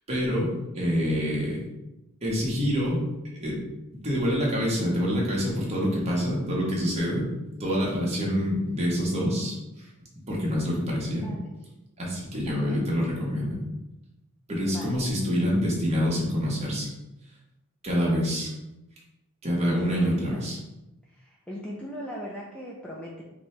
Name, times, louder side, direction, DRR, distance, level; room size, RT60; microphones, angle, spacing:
voice 1, 0.1-1.6 2.2-3.0 3.3-3.6 3.9-7.3 7.6-9.9 10.3-11.3 12.0-13.6 14.5-16.9 17.8-18.5 19.4-20.6, equal, 30° right, -4 dB, 1.2 m, -26 dB
voice 2, 11.1-11.5 12.3-12.8 14.6-15.1 19.7-20.4 21.1-23.2, equal, 5° left, -4 dB, 0.5 m, -39 dB
4.9 x 2.8 x 3.2 m, 0.95 s
head